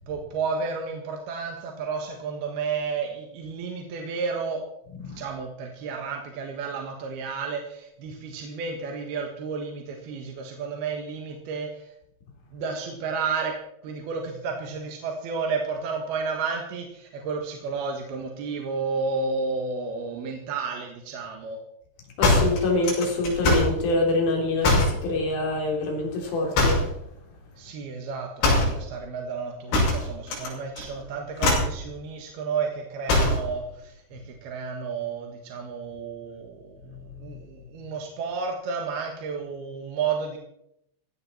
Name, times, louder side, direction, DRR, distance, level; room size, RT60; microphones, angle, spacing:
voice 1, 0.1-4.6 5.1-11.9 12.5-13.6 13.8-21.6 27.6-40.4, right 5 dB, 60° right, 2 dB, 3.2 m, -32 dB
sound 1, 22.2-23.8 24.6-25.0 26.5-27.0 28.4-28.8 29.7-30.5 30.8-31.0 31.4-31.8 33.1-33.5, left 2 dB, 70° left, 8.5 m, -21 dB
voice 2, 22.2-26.8, left 2 dB, 50° left, 1 dB, 5.2 m, -25 dB
17.0 x 16.0 x 4.4 m, 0.75 s
omnidirectional pair, 5.7 m